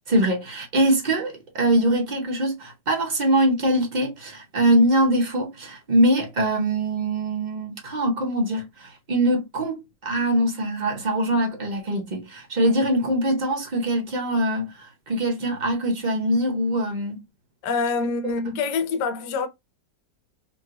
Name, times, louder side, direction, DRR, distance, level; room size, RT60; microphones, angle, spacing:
voice 1, 0.0-17.2 18.0-18.1, right 1 dB, 45° right, 0.5 m, -23 dB
voice 2, 17.6-19.5, left 4 dB, 75° left, 1.2 m, -25 dB
2.9 x 2.9 x 2.4 m
omnidirectional pair, 2.0 m